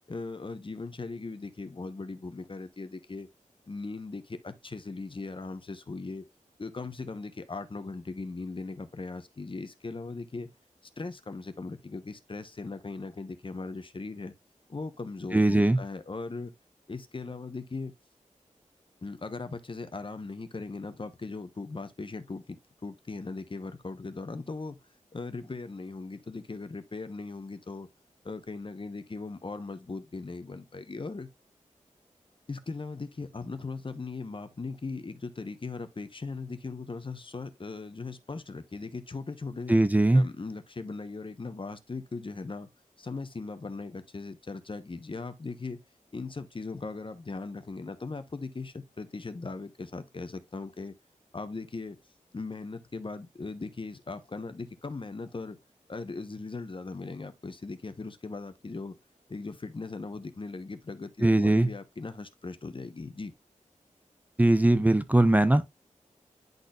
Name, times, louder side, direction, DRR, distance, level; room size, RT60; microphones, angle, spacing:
voice 1, 0.1-3.3 3.7-6.2 6.6-10.5 11.0-14.3 14.7-16.5 16.9-17.9 19.0-22.6 22.8-24.8 25.1-27.9 28.2-31.3 32.5-39.7 40.1-42.7 43.0-45.8 46.1-50.9 51.3-52.0 52.3-55.6 55.9-59.0 59.3-63.3, left 3 dB, 40° left, 1.0 m, -39 dB
voice 2, 15.3-15.8 39.7-40.2 61.2-61.7 64.4-65.7, right 1 dB, 10° right, 0.6 m, -21 dB
10.5 x 4.0 x 2.4 m
cardioid pair, 55°, 13 cm